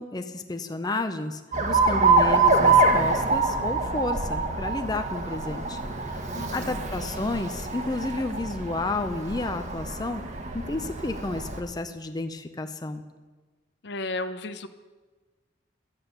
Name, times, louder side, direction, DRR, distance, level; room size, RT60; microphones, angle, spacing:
voice 1, 0.0-10.2 10.5-13.0, left 2 dB, 20° left, 7 dB, 0.6 m, -31 dB
Alarm, 1.5-11.6, right 3 dB, 40° right, 1.2 m, -25 dB
voice 2, 6.3-6.8 13.8-14.7, left 2 dB, 65° left, 11 dB, 0.7 m, -34 dB
12.5 x 8.8 x 6.7 m, 1.3 s
head